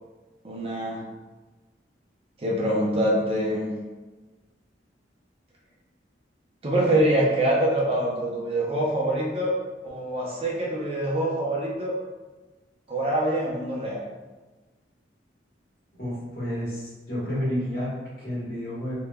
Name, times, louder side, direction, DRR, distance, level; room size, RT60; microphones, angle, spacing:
voice 1, 0.4-1.0 2.4-3.7 6.6-9.5 9.8-11.9 12.9-14.0, right 1 dB, 30° right, -4 dB, 0.6 m, -25 dB
voice 2, 16.0-19.0, equal, 55° left, -8 dB, 1.3 m, -30 dB
3.3 x 2.9 x 2.2 m, 1.2 s
head